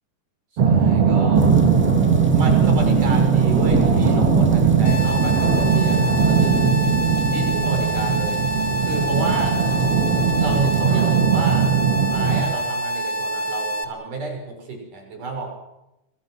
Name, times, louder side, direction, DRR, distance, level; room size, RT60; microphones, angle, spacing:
sound 1, 0.6-12.4, right 6 dB, 50° right, 3.3 m, -19 dB
voice 1, 0.6-1.5 2.3-6.8 7.3-8.4 8.8-9.6 10.4-15.5, right 3 dB, 85° right, 2 dB, 7.7 m, -30 dB
sound 2, 1.3-10.8, right 1 dB, 5° right, 1.4 m, -26 dB
sound 3, 4.8-13.8, right 1 dB, 40° left, 2.3 m, -27 dB
28.5 x 22.5 x 6.4 m, 0.92 s
omnidirectional pair, 3.6 m